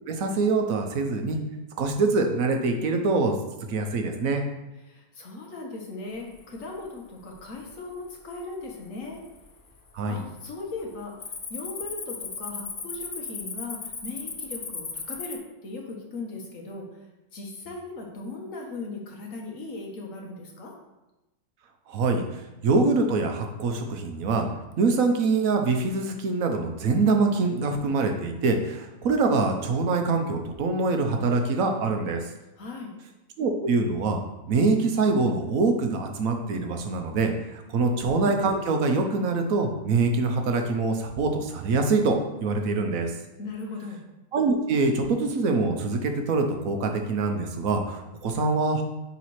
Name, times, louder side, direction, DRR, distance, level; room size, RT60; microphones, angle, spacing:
voice 1, 0.1-1.4 1.8-3.3 3.7-4.4 9.9-10.2 21.9-24.5 24.8-32.3 33.4-34.2 34.5-43.1 44.3-48.8, right 3 dB, 70° right, 4 dB, 1.2 m, -24 dB
voice 2, 4.8-9.2 10.1-17.0 17.3-20.7 32.6-32.9 43.4-44.0, left 3 dB, 60° left, 0 dB, 1.6 m, -38 dB
Cricket, 6.4-6.8 7.3-7.7 8.3-8.4 9.0-9.6 9.9-10.2 10.5-15.4, left 4 dB, 40° left, 0.5 m, -36 dB
9.7 x 4.1 x 3.1 m, 1.0 s
omnidirectional pair, 1.6 m